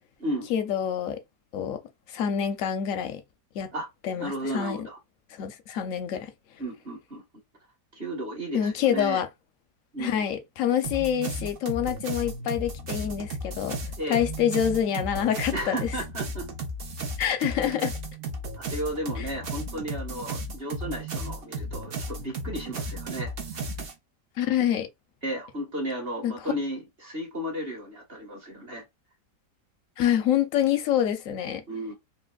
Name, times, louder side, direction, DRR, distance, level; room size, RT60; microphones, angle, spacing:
voice 1, 0.5-1.2 1.5-1.8 2.1-3.2 3.5-3.7 4.0-4.8 5.3-6.3 8.5-9.3 10.0-13.8 14.1-15.9 17.2-17.9 19.2-19.3 24.4-24.9 26.2-26.5 30.0-31.6, left 9 dB, 70° left, 0.8 m, -26 dB
voice 2, 4.2-5.0 6.6-7.2 7.9-9.2 9.9-10.2 14.0-14.2 15.5-16.5 17.5-17.7 18.6-23.6 25.2-28.8 31.7-31.9, right 1 dB, 40° right, 1.3 m, -34 dB
sound 1, 10.8-23.9, right 1 dB, 55° right, 0.6 m, -34 dB
3.1 x 2.6 x 2.2 m
omnidirectional pair, 1.8 m